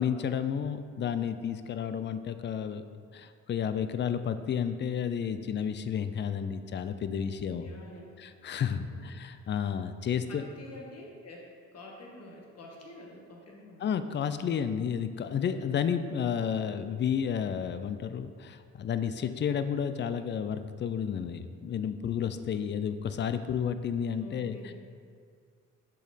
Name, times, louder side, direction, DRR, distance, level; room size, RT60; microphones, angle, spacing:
voice 1, 0.0-2.8 3.1-7.7 8.2-10.4 13.8-24.6, left 8 dB, 40° left, 11 dB, 0.4 m, -31 dB
voice 2, 7.5-8.2 8.6-9.0 10.3-13.9 24.2-24.7, left 1 dB, 55° left, -1 dB, 1.5 m, -48 dB
6.6 x 5.2 x 4.1 m, 2.1 s
cardioid pair, 90°, 30 cm